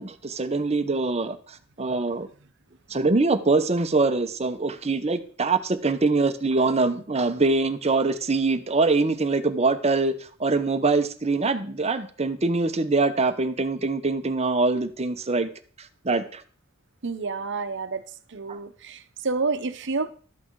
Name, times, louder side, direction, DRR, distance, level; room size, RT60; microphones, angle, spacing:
voice 1, 0.0-1.4 1.8-2.3 2.9-10.1 10.4-15.5 16.0-16.4 18.5-18.6, right 3 dB, 30° right, 0.9 m, -23 dB
voice 2, 17.0-18.0 18.3-20.1, right 4 dB, 60° right, 1.0 m, -29 dB
12.5 x 7.9 x 4.7 m
head